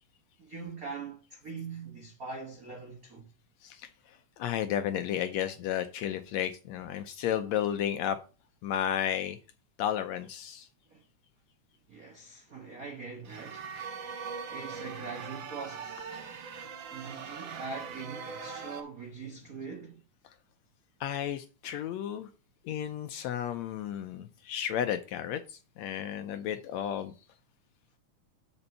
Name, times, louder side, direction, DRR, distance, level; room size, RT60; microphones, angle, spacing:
voice 1, 0.4-3.3 10.9-11.0 11.9-13.7 14.5-16.1 16.9-20.0, right 4 dB, 75° right, 0.8 m, -42 dB
voice 2, 4.4-8.2 8.6-9.4 9.8-10.7 21.0-22.3 22.6-27.1, left 10 dB, 80° left, 1.6 m, -33 dB
sound 1, 13.2-18.8, right 6 dB, 60° right, 1.3 m, -41 dB
6.9 x 5.3 x 6.9 m
omnidirectional pair, 3.6 m